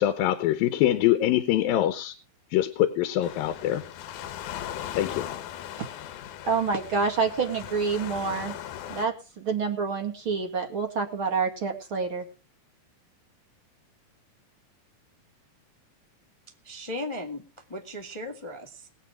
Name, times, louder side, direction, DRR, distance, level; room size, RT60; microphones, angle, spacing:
voice 1, 0.0-2.1 2.5-3.8 5.0-5.2, left 13 dB, 90° left, 10 dB, 2.7 m, -24 dB
Waves surf, 3.2-9.1, left 11 dB, 70° left, 2.3 m, -38 dB
voice 2, 6.4-8.5 8.9-12.2, right 5 dB, 40° right, 4 dB, 2.4 m, -27 dB
voice 3, 16.6-18.9, left 1 dB, 15° left, 3 dB, 1.1 m, -37 dB
21.0 x 8.3 x 4.9 m, 0.34 s
omnidirectional pair, 4.0 m